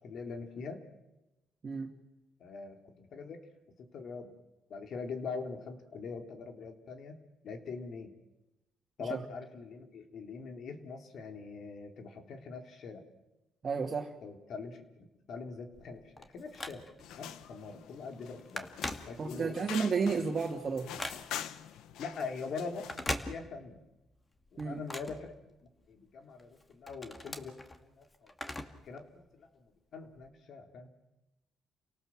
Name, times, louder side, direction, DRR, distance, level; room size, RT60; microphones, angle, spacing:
voice 1, 0.0-0.8 2.4-3.4 3.8-4.3 4.7-7.2 7.4-8.1 9.0-13.0 14.2-16.9 17.2-18.7 19.0-19.7 22.0-22.9 23.3-23.8 24.5-25.4 25.9-28.5 28.8-29.5 29.9-30.9, left 4 dB, 65° left, 5 dB, 3.5 m, -43 dB
voice 2, 13.6-14.1 19.2-20.9 24.6-24.8, right 5 dB, 40° right, -1 dB, 2.5 m, -32 dB
Telephone, 15.7-17.2 17.7-17.9 18.1-19.6 20.0-21.6 22.7-23.9 24.2-25.9 26.4-28.9 29.2-29.3 30.2-30.3, left 2 dB, 25° left, 2.3 m, -41 dB
sound 1, 17.0-23.1, left 10 dB, 90° left, 1.1 m, -45 dB
29.5 x 18.0 x 7.6 m, 0.99 s
cardioid pair, 90°, 0 cm